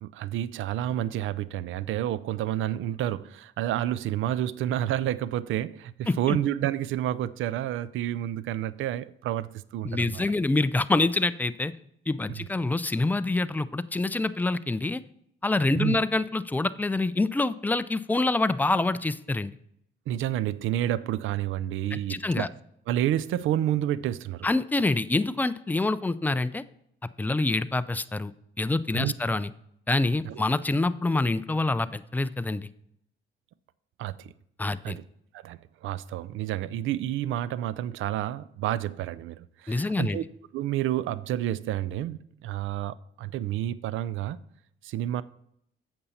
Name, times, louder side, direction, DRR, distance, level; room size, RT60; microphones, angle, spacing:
voice 1, 0.0-10.2 12.3-12.4 15.8-16.0 20.1-22.5 22.9-24.5 28.9-29.1 30.2-30.4 34.0-34.3 34.8-35.0 35.3-40.2 40.5-44.4 44.8-45.2, right 12 dB, 80° right, 0.5 m, -29 dB
voice 2, 6.1-6.4 9.8-11.7 12.1-15.0 15.4-19.5 21.9-22.5 24.4-26.6 27.2-28.3 28.6-29.5 29.9-32.7 34.6-35.0 39.7-40.2, left 2 dB, 10° left, 0.4 m, -26 dB
8.6 x 7.0 x 4.1 m
cardioid pair, 90°, 20 cm